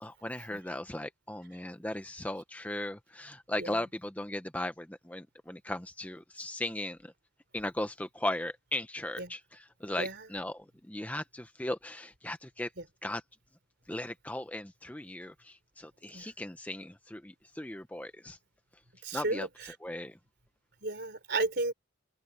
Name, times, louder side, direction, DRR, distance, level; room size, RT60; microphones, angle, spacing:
voice 1, 0.0-7.1 7.5-12.7 13.0-13.2 13.9-18.4 19.1-19.5 19.8-20.2, left 1 dB, 5° left, 0.8 m, -37 dB
voice 2, 19.0-19.7 20.8-21.7, right 2 dB, 55° right, 4.2 m, -34 dB
open air
head